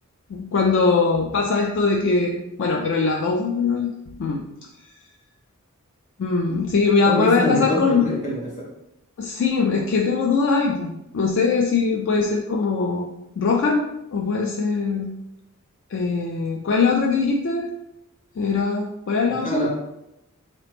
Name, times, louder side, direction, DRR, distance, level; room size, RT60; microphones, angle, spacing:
voice 1, 0.3-3.9 4.2-4.4 6.2-8.0 9.2-15.2 15.9-17.7 18.4-19.7, left 4 dB, 55° left, 1 dB, 0.4 m, -21 dB
voice 2, 7.0-8.7 19.4-19.7, equal, 30° left, -3 dB, 1.2 m, -25 dB
4.0 x 2.9 x 3.3 m, 0.86 s
head